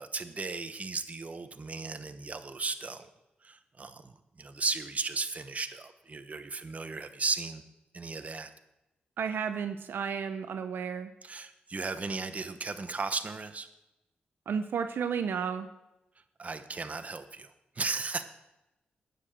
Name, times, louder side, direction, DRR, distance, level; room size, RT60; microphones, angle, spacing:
voice 1, 0.0-3.1 3.4-7.6 7.9-8.5 11.2-13.7 16.4-17.5 17.8-18.2, right 4 dB, 40° right, 9 dB, 1.0 m, -35 dB
voice 2, 9.2-11.1 14.5-15.7, right 6 dB, 75° right, 8 dB, 0.7 m, -32 dB
9.6 x 6.9 x 7.7 m, 0.94 s
cardioid pair, 60°, 4 cm